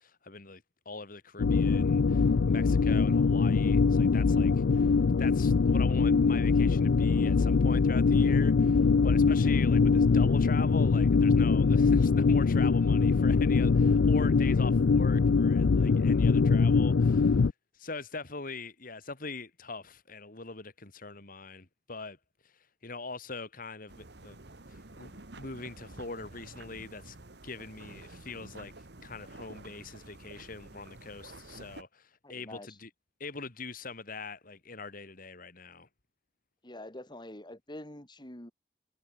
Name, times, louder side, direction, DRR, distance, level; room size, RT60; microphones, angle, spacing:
voice 1, 0.0-17.5 17.7-22.2 22.4-23.9 24.2-24.4 24.7-27.2 27.4-28.7 29.0-32.9 33.2-35.9, left 3 dB, 50° left, 2.1 m, -42 dB
sound 1, 1.4-17.5, left 4 dB, 80° left, 0.5 m, -23 dB
sound 2, 23.9-31.8, right 2 dB, 65° right, 1.9 m, -50 dB
voice 2, 32.2-32.8 36.6-38.5, left 1 dB, 25° left, 3.8 m, -46 dB
head